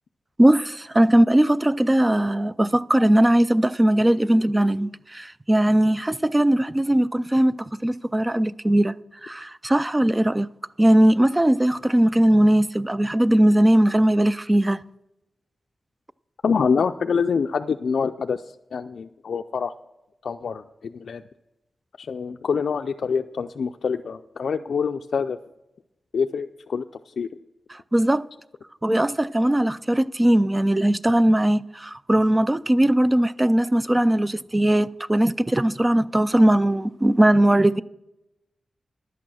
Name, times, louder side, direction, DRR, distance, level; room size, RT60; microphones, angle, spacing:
voice 1, 0.4-8.9 9.2-10.5 10.8-14.8 27.7-28.3 28.8-37.8, right 1 dB, 15° right, 0.3 m, -19 dB
voice 2, 16.4-18.4 18.7-19.7 20.2-20.6 20.9-21.2 22.0-25.4 26.1-26.8 27.2-27.3, left 6 dB, 75° left, 0.3 m, -25 dB
11.0 x 8.4 x 6.3 m
wide cardioid pair, 115°, 0 cm